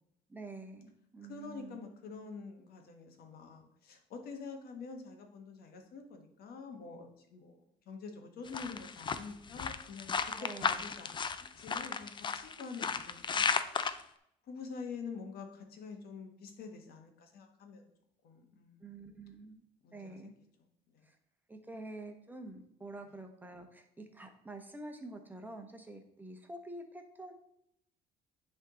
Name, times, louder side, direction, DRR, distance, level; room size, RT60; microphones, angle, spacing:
voice 1, 0.3-1.9 10.4-10.8 18.8-19.6 19.9-20.3 21.0-21.2 21.5-27.3, right 2 dB, 10° right, 5 dB, 1.1 m, -47 dB
voice 2, 1.3-7.6 7.8-11.2 11.6-14.1 14.4-17.9 18.2-18.8 19.8-20.3 20.9-21.0, left 4 dB, 65° left, 4 dB, 1.4 m, -47 dB
sound 1, 8.5-14.0, left 6 dB, 30° left, 0.5 m, -34 dB
9.7 x 3.6 x 3.8 m, 0.75 s
cardioid pair, 110°, 17 cm